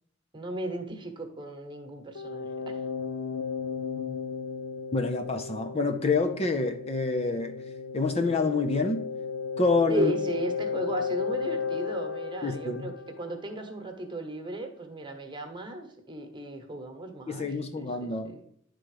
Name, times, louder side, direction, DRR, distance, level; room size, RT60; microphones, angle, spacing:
voice 1, 0.3-2.8 9.9-18.4, right 1 dB, 25° right, 1.3 m, -35 dB
sound 1, 2.2-13.8, left 5 dB, 75° left, 0.8 m, -35 dB
voice 2, 4.9-7.6 7.9-9.1 9.6-10.1 12.4-12.9 17.3-18.4, left 3 dB, 30° left, 0.6 m, -27 dB
10.5 x 3.8 x 4.8 m
head